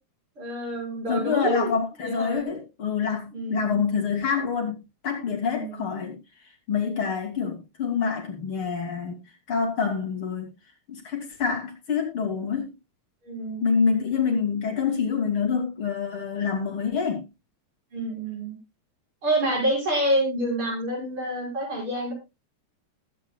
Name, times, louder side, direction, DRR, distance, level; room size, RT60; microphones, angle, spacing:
voice 1, 0.4-1.7 2.0-2.5 3.3-3.8 5.4-5.9 13.2-13.7 17.9-18.6 19.2-22.1, right 1 dB, 80° right, 6.9 m, -27 dB
voice 2, 1.1-4.8 5.0-6.2 6.7-9.2 9.5-10.5 10.9-12.7 13.6-17.3, left 6 dB, 80° left, 3.7 m, -26 dB
20.0 x 8.5 x 2.3 m
omnidirectional pair, 2.3 m